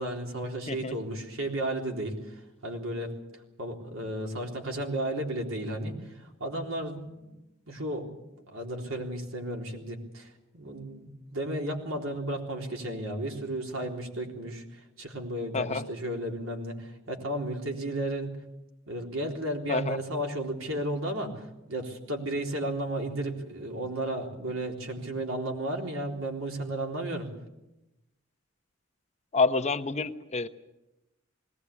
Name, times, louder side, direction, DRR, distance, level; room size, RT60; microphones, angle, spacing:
voice 1, 0.0-3.1 3.6-7.3 7.7-8.1 8.5-18.3 18.9-27.3, right 1 dB, 85° right, 1 dB, 3.8 m, -33 dB
voice 2, 29.3-30.5, left 4 dB, 35° left, 9 dB, 0.9 m, -28 dB
20.5 x 18.0 x 8.5 m, 0.97 s
head